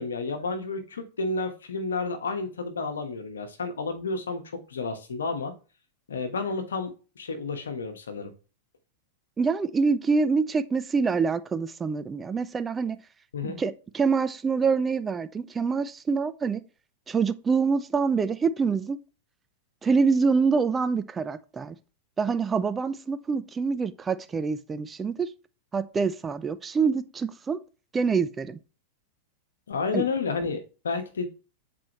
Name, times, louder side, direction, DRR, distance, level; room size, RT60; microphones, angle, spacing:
voice 1, 0.0-5.5 6.1-8.3 13.3-13.6 29.7-31.3, left 4 dB, 80° left, 1.2 m, -31 dB
voice 2, 9.4-13.0 13.4-16.6 17.1-19.0 19.8-21.7 22.2-25.3 25.7-27.6 27.9-28.6 29.9-30.0, right 5 dB, 20° right, 0.5 m, -25 dB
7.4 x 4.4 x 3.0 m
hypercardioid pair, 100°, 0 cm